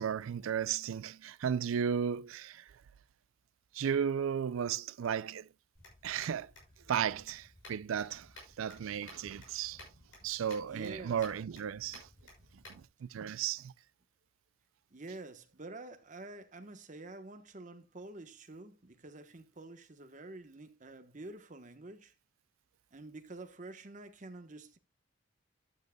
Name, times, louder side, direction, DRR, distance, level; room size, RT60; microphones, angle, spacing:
voice 1, 0.0-2.7 3.7-5.5 6.0-6.5 6.9-8.3 8.6-9.9 10.2-12.1 12.7-13.7, right 8 dB, 85° right, 0.4 m, -34 dB
sound 1, 5.7-12.8, left 1 dB, 75° left, 6.2 m, -55 dB
voice 2, 10.6-11.2 13.2-13.3 14.9-22.1 22.9-24.8, right 2 dB, 40° right, 1.1 m, -48 dB
12.0 x 9.2 x 2.3 m
head